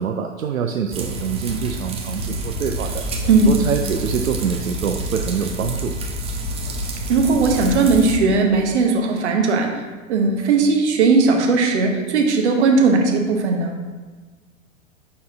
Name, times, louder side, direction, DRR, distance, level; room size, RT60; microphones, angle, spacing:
voice 1, 0.0-3.1 3.5-5.9, right 7 dB, 80° right, 3 dB, 0.5 m, -25 dB
sound 1, 0.9-8.2, right 1 dB, 15° right, 0.7 m, -28 dB
voice 2, 7.1-9.8 10.1-13.7, right 4 dB, 55° right, 2 dB, 1.1 m, -17 dB
5.9 x 4.2 x 3.9 m, 1.4 s
figure-of-eight pair, 100°, 40 cm